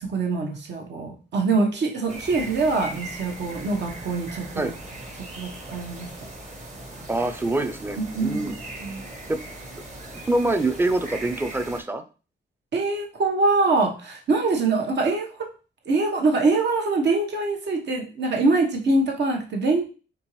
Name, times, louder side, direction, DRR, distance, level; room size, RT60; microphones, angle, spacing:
voice 1, 0.0-4.7 5.4-6.1 8.0-8.5 8.8-9.0 12.7-15.5 15.9-19.8, right 3 dB, 65° right, 2 dB, 1.1 m, -24 dB
sound 1, 2.1-11.8, right 1 dB, 40° right, 1.2 m, -39 dB
voice 2, 7.1-8.5 9.3-9.4 10.3-12.0, right 2 dB, 10° right, 8 dB, 0.5 m, -25 dB
4.4 x 3.8 x 3.0 m, 0.35 s
wide cardioid pair, 135°, 19 cm